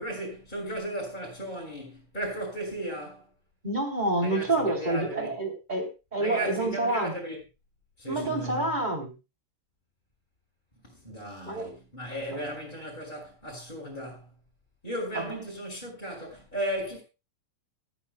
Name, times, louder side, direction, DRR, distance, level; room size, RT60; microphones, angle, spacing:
voice 1, 0.0-3.3 4.2-5.3 6.2-7.4 8.0-8.7 10.8-14.3 14.8-17.0, right 1 dB, 10° left, 4.5 m, -35 dB
voice 2, 3.6-7.2 8.1-9.1 11.4-11.7 12.3-12.4, right 2 dB, 10° right, 2.6 m, -28 dB
24.5 x 9.6 x 2.3 m
omnidirectional pair, 6.0 m